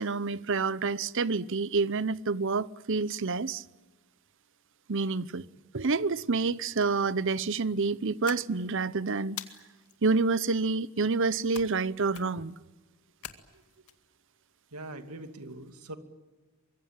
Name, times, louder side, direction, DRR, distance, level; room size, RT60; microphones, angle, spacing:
voice 1, 0.0-3.6 4.9-5.5 5.7-9.4 10.0-12.6, right 4 dB, 55° right, 0.8 m, -28 dB
sound 1, 8.2-8.8 9.4-10.0 11.5-11.9 12.1-12.5 13.2-13.9, left 10 dB, 85° left, 2.2 m, -43 dB
voice 2, 14.7-16.0, right 2 dB, 90° right, 2.5 m, -42 dB
24.5 x 23.0 x 8.9 m
head